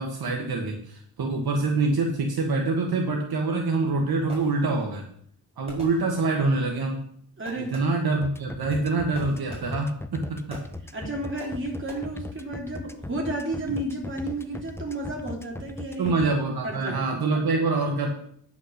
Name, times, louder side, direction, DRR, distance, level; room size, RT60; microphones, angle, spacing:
voice 1, 0.0-5.0 5.6-7.0 7.6-10.6 16.0-18.1, right 3 dB, 65° right, 1 dB, 1.4 m, -25 dB
Fireworks, 4.3-4.9 5.7-6.5 7.4-8.2 9.1-10.0 10.5-10.9 11.4-11.9, right 1 dB, 15° right, 5.3 m, -45 dB
voice 2, 7.4-7.7 10.9-16.2 16.6-17.2, right 1 dB, 30° right, -1 dB, 3.2 m, -32 dB
sound 1, 8.2-16.3, left 2 dB, 5° left, 0.6 m, -38 dB
9.7 x 5.8 x 6.4 m, 0.66 s
wide cardioid pair, 105°, 39 cm